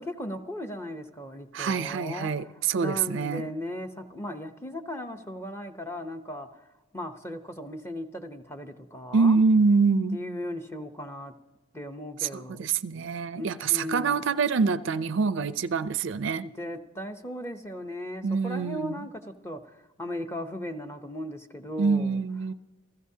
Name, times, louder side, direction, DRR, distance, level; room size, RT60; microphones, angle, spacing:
voice 1, 0.0-6.6 6.9-9.4 10.1-11.3 11.7-12.7 13.3-14.2 16.4-22.2, left 1 dB, 10° left, 0.7 m, -37 dB
voice 2, 1.5-3.5 9.1-10.2 12.2-16.5 18.2-19.0 21.8-22.5, right 4 dB, 60° right, 0.4 m, -25 dB
28.5 x 15.5 x 2.8 m
head